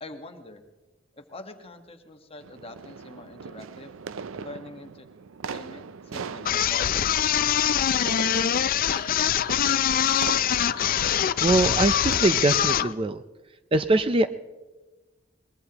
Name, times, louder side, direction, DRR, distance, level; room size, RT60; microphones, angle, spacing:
voice 1, 0.0-0.6 1.2-3.9 4.4-5.1 5.5-7.7, left 2 dB, 30° left, 6 dB, 1.3 m, -44 dB
sound 1, 2.4-12.6, right 5 dB, 80° right, 0.5 m, -40 dB
sound 2, 6.5-12.9, left 9 dB, 45° left, 0.4 m, -23 dB
voice 2, 11.4-13.2 13.7-14.3, right 2 dB, 25° right, 10 dB, 0.5 m, -22 dB
22.5 x 21.0 x 2.9 m, 1.2 s
head